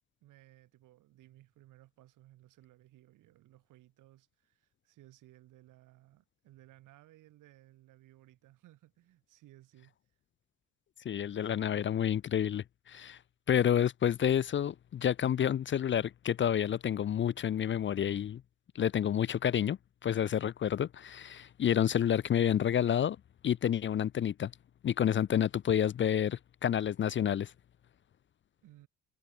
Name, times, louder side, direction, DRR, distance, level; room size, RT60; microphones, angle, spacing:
voice 1, 0.2-9.9 28.6-28.9, right 16 dB, 75° right, 7.2 m, -60 dB
voice 2, 11.0-13.2 13.5-18.4 18.8-23.2 23.4-24.5 24.8-27.5, left 9 dB, 40° left, 0.6 m, -29 dB
supercardioid pair, 70°, 31 cm